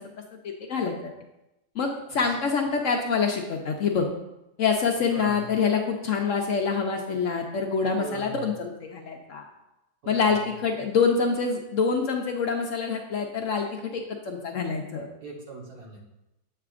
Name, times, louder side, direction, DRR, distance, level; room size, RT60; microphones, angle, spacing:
voice 1, 0.4-1.0 1.7-4.0 4.6-9.5 10.1-15.1, left 5 dB, 65° left, 2 dB, 0.8 m, -26 dB
voice 2, 5.1-5.5 7.9-8.5 10.0-10.3 15.2-16.0, right 3 dB, 70° right, -1 dB, 1.8 m, -40 dB
8.1 x 5.7 x 2.5 m, 0.92 s
omnidirectional pair, 1.7 m